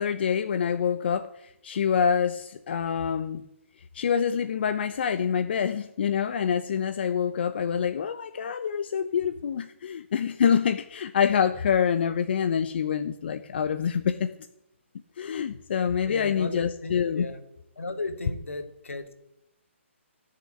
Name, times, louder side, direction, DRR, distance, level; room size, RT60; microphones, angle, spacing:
voice 1, 0.0-3.4 3.9-14.3 15.2-17.3, left 7 dB, 50° left, 10 dB, 0.9 m, -26 dB
voice 2, 16.1-17.4 17.8-19.1, left 3 dB, 80° left, 7 dB, 2.5 m, -35 dB
16.5 x 6.8 x 9.9 m, 0.83 s
hypercardioid pair, 145°, 7 cm